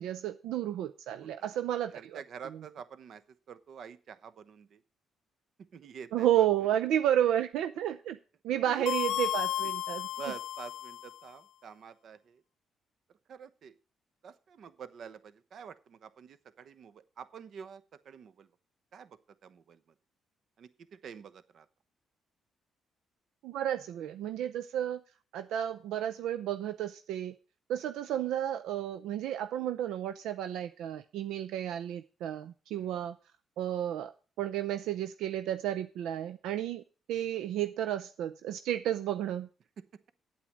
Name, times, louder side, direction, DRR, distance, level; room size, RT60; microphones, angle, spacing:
voice 1, 0.0-2.2 6.1-8.2 8.4-10.1 23.4-25.0 25.3-27.3 27.7-33.2 33.6-34.1 34.4-36.8 37.1-39.5, right 11 dB, 85° right, 0.6 m, -32 dB
voice 2, 1.1-1.5 1.9-3.2 3.5-4.8 5.7-6.5 8.6-8.9 10.1-12.4 13.3-13.8 14.2-18.5 18.9-19.8 20.6-21.7 32.8-33.0, right 7 dB, 60° right, 1.0 m, -48 dB
sound 1, 8.9-11.2, left 12 dB, 80° left, 0.4 m, -33 dB
8.9 x 8.5 x 6.2 m
cardioid pair, 90°, 0 cm